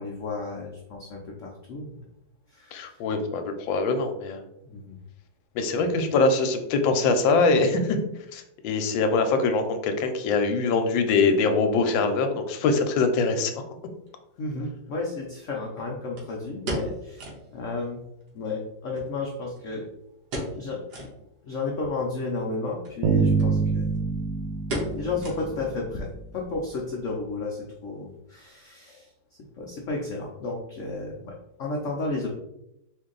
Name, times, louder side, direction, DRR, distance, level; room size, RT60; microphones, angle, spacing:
voice 1, 0.0-2.0 2.5-3.0 4.6-5.0 5.8-5.9 14.4-17.3 17.5-18.0 18.3-19.9 20.5-20.8 21.4-23.9 25.0-29.1 29.6-31.3 31.6-32.4, left 3 dB, 70° left, -1 dB, 0.7 m, -32 dB
voice 2, 2.7-4.4 5.5-8.0 8.3-13.5, left 4 dB, 85° left, 7 dB, 1.3 m, -23 dB
sound 1, 14.1-14.2 16.2-17.5 17.8-17.9 18.2-18.3 18.9-19.8 20.3-20.6 20.9-21.2 21.7-21.8 22.7-23.0 23.4-23.5 23.8-24.1 24.7-25.8 26.1-26.2 26.7-27.1 27.4-27.5, equal, 60° right, 1.7 m, -34 dB
sound 2, 23.0-26.1, right 5 dB, 90° right, 1.5 m, -25 dB
4.4 x 2.6 x 3.7 m, 0.85 s
omnidirectional pair, 2.0 m